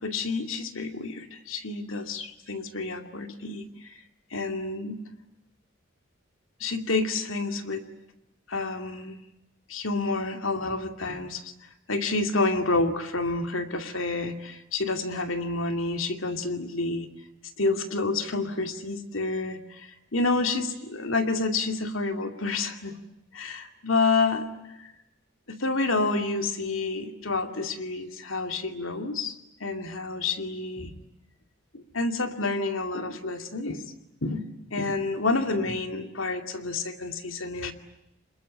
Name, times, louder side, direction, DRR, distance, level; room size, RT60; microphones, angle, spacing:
voice 1, 0.0-3.9 4.3-5.0 6.6-7.9 8.5-9.2 9.7-11.5 11.9-17.1 17.6-22.9 23.3-24.5 24.8-24.9 25.5-29.3 29.6-30.9 31.7-33.9 34.2-37.7, left 3 dB, 80° left, 6 dB, 2.5 m, -29 dB
27.0 x 21.5 x 9.8 m, 0.89 s
head